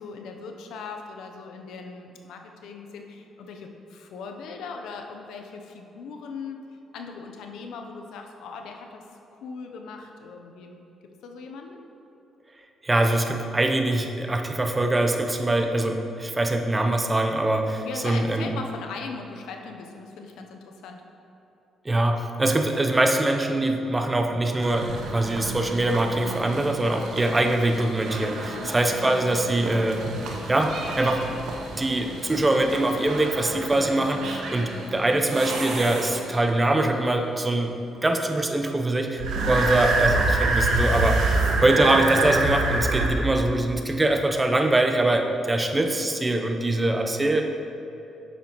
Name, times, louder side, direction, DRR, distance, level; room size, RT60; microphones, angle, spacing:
voice 1, 0.0-6.6 6.9-9.0 9.3-11.8 17.8-21.0 28.5-28.7 41.3-41.5, left 4 dB, 85° left, 4 dB, 0.7 m, -39 dB
voice 2, 12.8-18.5 21.8-30.0 30.5-31.2 31.8-37.7 38.0-41.2 41.6-47.4, right 2 dB, 20° right, 4 dB, 0.7 m, -23 dB
sound 1, 24.6-36.5 39.2-43.1, right 2 dB, 75° right, 1.1 m, -28 dB
9.1 x 6.7 x 3.0 m, 2.9 s
cardioid pair, 90°, 0 cm